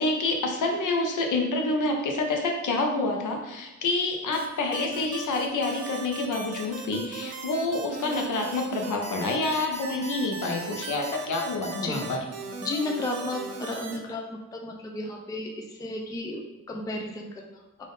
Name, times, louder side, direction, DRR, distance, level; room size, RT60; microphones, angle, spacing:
voice 1, 0.0-12.2, left 2 dB, 75° left, 2 dB, 0.7 m, -28 dB
sound 1, 4.3-14.0, right 3 dB, 55° right, 0.5 m, -38 dB
voice 2, 12.6-17.6, left 2 dB, 10° left, 1 dB, 0.3 m, -33 dB
3.5 x 2.5 x 3.8 m, 1.0 s
wide cardioid pair, 165°, 31 cm